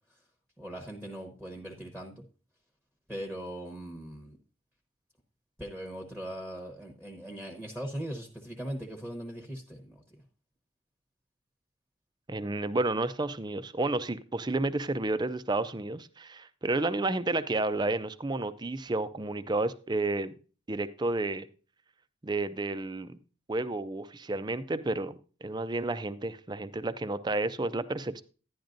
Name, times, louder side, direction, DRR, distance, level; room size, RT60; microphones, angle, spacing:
voice 1, 0.6-2.2 3.1-4.4 5.6-10.0, equal, 5° left, 3 dB, 1.0 m, -40 dB
voice 2, 12.3-20.3 20.7-21.5 22.2-23.2 23.5-25.1 25.4-28.2, right 2 dB, 20° right, 13 dB, 0.5 m, -31 dB
11.0 x 10.5 x 2.6 m, 0.37 s
head